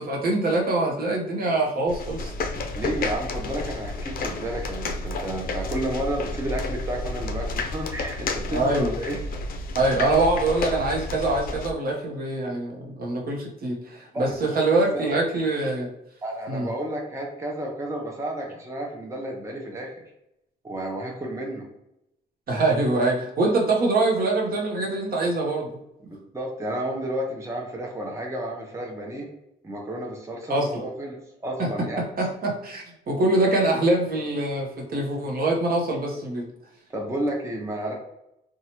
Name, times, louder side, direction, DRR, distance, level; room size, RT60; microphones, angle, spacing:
voice 1, 0.0-2.3 8.5-8.9 9.7-15.9 16.5-16.7 22.5-25.8 30.5-30.8 31.6-31.7 32.0-36.4, right 2 dB, 55° right, -1 dB, 0.8 m, -24 dB
sound 1, 1.9-11.7, left 2 dB, 50° left, 0.4 m, -31 dB
voice 2, 2.7-9.2 14.1-14.6 14.9-15.2 16.2-19.9 20.6-21.7 26.0-29.3 29.6-32.0 36.9-37.9, right 1 dB, 15° right, 0 dB, 0.7 m, -31 dB
2.9 x 2.3 x 2.8 m, 0.84 s
cardioid pair, 95°, 19 cm